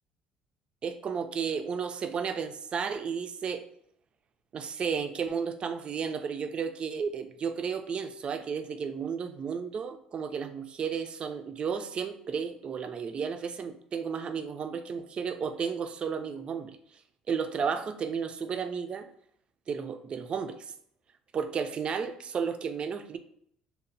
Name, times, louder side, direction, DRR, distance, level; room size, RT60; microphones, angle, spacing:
voice 1, 0.8-3.6 4.5-16.7 17.3-19.1 19.7-20.6 21.3-23.2, right 6 dB, 45° right, 9 dB, 0.3 m, -33 dB
2.9 x 2.0 x 2.6 m, 0.68 s
supercardioid pair, 75°, 3 cm